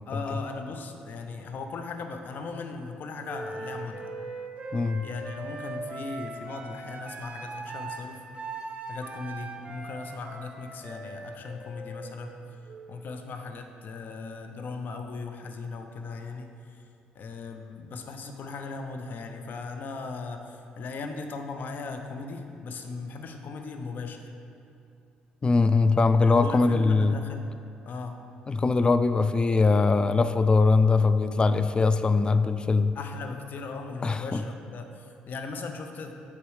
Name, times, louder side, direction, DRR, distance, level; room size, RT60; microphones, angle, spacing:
voice 1, 0.1-4.0 5.0-8.2 8.9-12.4 12.9-16.8 17.1-24.3 26.2-27.4 27.8-28.2 32.9-36.1, left 4 dB, 60° left, 5 dB, 0.7 m, -38 dB
Wind instrument woodwind instrument, 3.3-13.1, right 3 dB, 35° right, 0.9 m, -40 dB
voice 2, 4.7-5.1 25.4-27.2 28.5-33.0 34.0-34.4, left 3 dB, 25° left, 11 dB, 0.3 m, -22 dB
7.1 x 4.4 x 4.8 m, 2.6 s
supercardioid pair, 65°, 4 cm